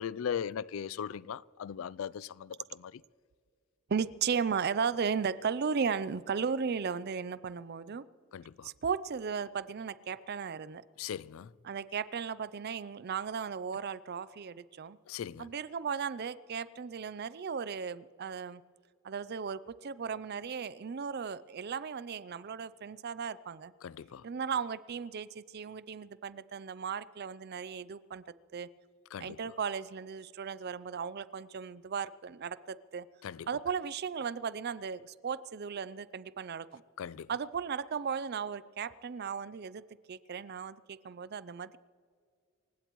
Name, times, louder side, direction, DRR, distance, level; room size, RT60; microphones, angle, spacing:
voice 1, 0.0-2.9 8.3-8.7 11.0-11.5 15.1-15.5 23.8-24.2 29.1-29.4 33.2-33.5 37.0-37.3, left 8 dB, 65° left, 0.3 m, -38 dB
voice 2, 3.9-8.1 8.6-10.8 11.6-15.0 15.4-18.6 19.0-23.7 24.2-28.2 28.5-28.7 29.2-33.1 33.5-36.8 37.3-41.8, right 6 dB, 50° right, 0.4 m, -36 dB
27.5 x 16.0 x 3.1 m
head